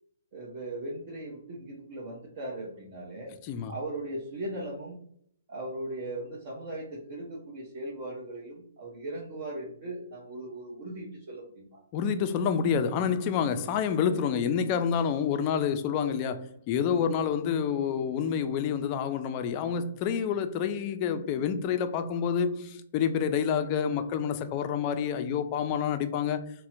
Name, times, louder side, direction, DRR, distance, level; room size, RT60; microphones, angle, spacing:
voice 1, 0.3-3.3 3.7-5.0 5.5-11.8, right 1 dB, 45° right, 0.7 m, -38 dB
voice 2, 3.4-3.7 11.9-26.5, left 7 dB, 35° left, 0.3 m, -28 dB
4.1 x 2.0 x 2.4 m
figure-of-eight pair, 125°, 0 cm